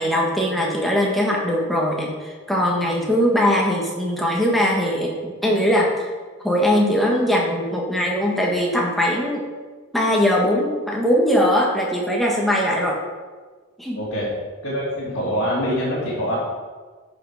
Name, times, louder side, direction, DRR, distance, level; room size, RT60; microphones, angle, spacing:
voice 1, 0.0-6.1 6.4-9.4 9.9-13.0 13.8-14.0, equal, ahead, -2 dB, 1.6 m, -20 dB
voice 2, 13.9-14.3 14.6-16.4, equal, 55° left, -10 dB, 2.9 m, -24 dB
11.0 x 6.0 x 5.0 m, 1.4 s
head